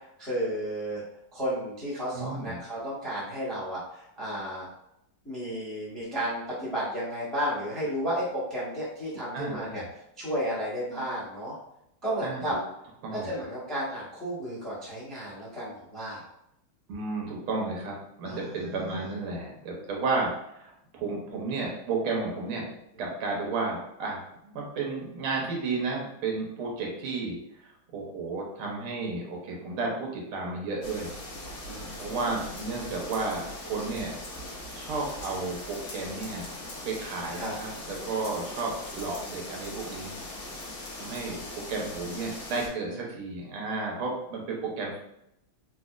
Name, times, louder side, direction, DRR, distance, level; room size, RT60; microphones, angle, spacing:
voice 1, 0.2-1.0 1.3-4.7 5.2-9.8 10.2-11.5 12.0-12.5 13.1-16.2 18.3-19.1 31.7-32.2 37.4-37.5 42.8-42.9, equal, ahead, -7 dB, 0.9 m, -33 dB
voice 2, 2.1-2.6 9.3-9.9 12.2-12.4 13.0-13.3 16.9-20.3 20.6-22.6 23.0-27.4 27.6-31.2 31.8-34.2 34.8-36.5 36.8-40.2 40.9-41.4 41.7-45.0, right 3 dB, 90° right, -1 dB, 1.7 m, -33 dB
sound 1, 30.8-42.7, left 1 dB, 65° left, 0.8 m, -40 dB
4.0 x 2.4 x 2.4 m, 0.80 s
omnidirectional pair, 2.3 m